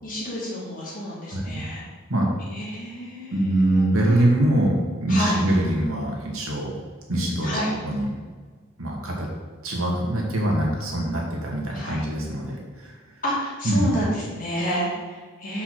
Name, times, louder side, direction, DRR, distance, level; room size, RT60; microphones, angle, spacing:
voice 1, 0.0-1.9 2.5-4.3 5.1-5.4 7.4-7.8 11.7-12.1 13.2-15.6, equal, 40° left, -5 dB, 2.6 m, -29 dB
voice 2, 3.3-6.7 7.1-8.1 8.8-9.3 9.6-12.9 13.6-14.0, right 1 dB, 70° right, -2 dB, 2.0 m, -23 dB
6.2 x 5.4 x 6.5 m, 1.5 s
head